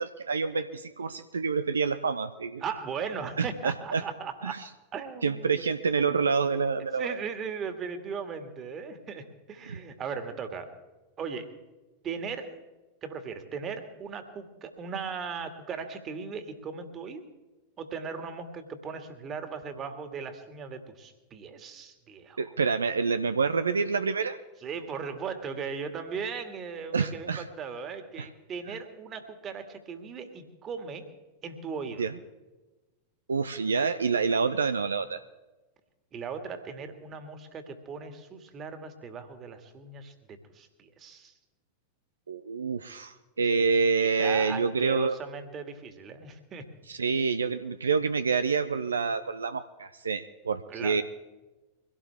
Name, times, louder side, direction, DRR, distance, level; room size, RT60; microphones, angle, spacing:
voice 1, 0.0-2.6 3.4-4.0 4.4-4.6 5.2-7.2 9.7-9.8 22.4-24.4 26.9-27.5 32.0-32.1 33.3-35.2 42.3-45.1 46.9-51.0, right 5 dB, 75° right, 10 dB, 0.6 m, -27 dB
voice 2, 2.6-4.6 4.9-5.6 7.0-10.7 11.2-11.5 12.0-12.5 13.0-17.2 17.8-22.4 24.6-31.1 31.4-32.1 36.1-41.3 43.6-43.7 44.0-46.6 50.7-51.0, right 6 dB, 30° right, 7 dB, 2.1 m, -38 dB
23.5 x 17.0 x 3.5 m, 1.2 s
figure-of-eight pair, 90°, 0 cm